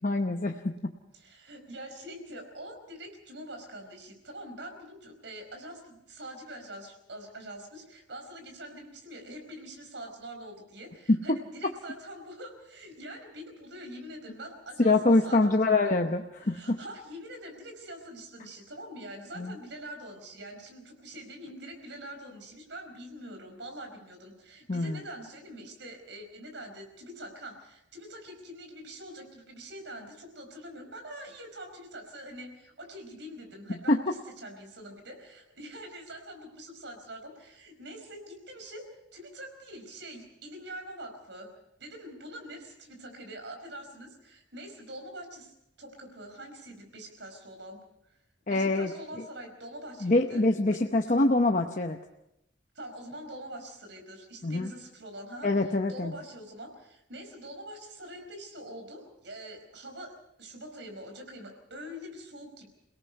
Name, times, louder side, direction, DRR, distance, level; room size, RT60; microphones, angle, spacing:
voice 1, 0.0-0.9 11.1-11.4 14.8-16.8 19.4-19.6 24.7-25.0 33.7-34.0 48.5-48.9 49.2-49.3 50.0-52.0 54.4-54.7 55.4-56.1, left 2 dB, 40° left, 3 dB, 0.9 m, -25 dB
voice 2, 1.1-15.9 16.4-41.5 41.8-45.5 45.8-47.8 48.5-50.4 50.7-50.8 51.1-51.2 52.7-62.7, right 1 dB, 70° right, 5 dB, 4.9 m, -44 dB
28.0 x 18.0 x 5.4 m, 0.83 s
head